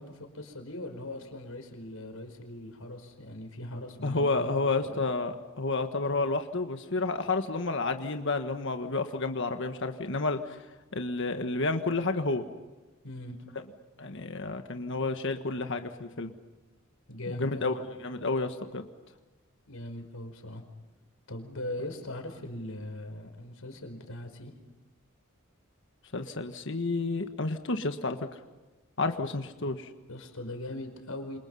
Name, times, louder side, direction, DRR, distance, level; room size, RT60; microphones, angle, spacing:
voice 1, 0.0-4.5 4.8-5.0 13.0-13.4 17.1-17.8 19.7-20.6 21.3-24.5 30.1-31.4, left 1 dB, 80° left, 6 dB, 5.0 m, -40 dB
voice 2, 4.0-10.6 10.9-12.4 14.0-16.3 17.3-18.9 26.1-28.2 29.0-29.9, left 3 dB, 60° left, 6 dB, 1.6 m, -30 dB
28.5 x 27.5 x 5.6 m, 1.2 s
head